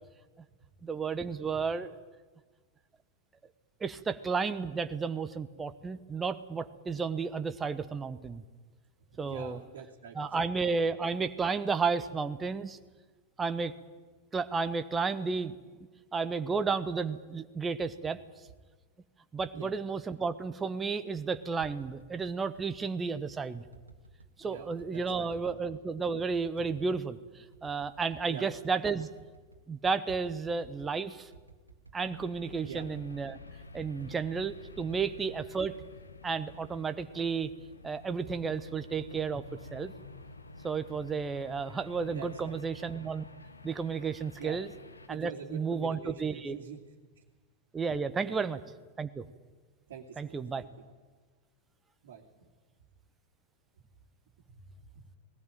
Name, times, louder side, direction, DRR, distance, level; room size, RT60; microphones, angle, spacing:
voice 1, 0.8-1.9 3.8-8.4 9.2-9.6 10.1-12.8 13.4-13.7 14.3-15.6 16.1-18.2 19.3-23.6 24.4-29.1 29.7-31.3 31.9-33.4 33.7-35.8 36.2-37.5 37.8-39.9 40.6-43.2 43.6-44.7 45.1-46.6 47.7-48.6 49.0-49.2 50.2-50.6, right 5 dB, 15° right, 11 dB, 1.1 m, -32 dB
voice 2, 9.1-10.5 19.5-19.7 24.4-25.6 28.3-28.5 32.6-32.9 42.1-42.6 44.4-44.6 45.1-46.8 47.2-47.3 48.2-48.4 49.9-50.7 52.0-52.2 54.5-55.2, right 7 dB, 60° right, -4 dB, 2.7 m, -45 dB
sound 1, 21.6-22.7 23.7-24.3 24.8-25.8 26.3-27.1 27.5-28.2 28.5-28.6 28.8-29.7 30.1-31.0 31.3-32.1 32.6-35.7 36.1-36.5, right 4 dB, 85° right, 1.7 m, -55 dB
sound 2, 32.0-45.1, left 3 dB, 80° left, 1.4 m, -50 dB
19.0 x 18.0 x 9.1 m, 1.4 s
figure-of-eight pair, 90°, 0 cm